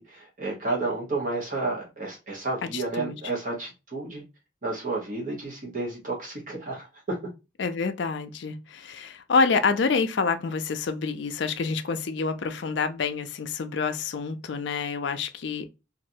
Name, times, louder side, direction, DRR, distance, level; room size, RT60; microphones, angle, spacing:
voice 1, 0.0-4.2 4.6-7.2, right 2 dB, 45° right, 1.1 m, -31 dB
voice 2, 2.7-3.2 7.6-15.7, left 4 dB, 70° left, 0.4 m, -27 dB
3.1 x 2.6 x 2.7 m
head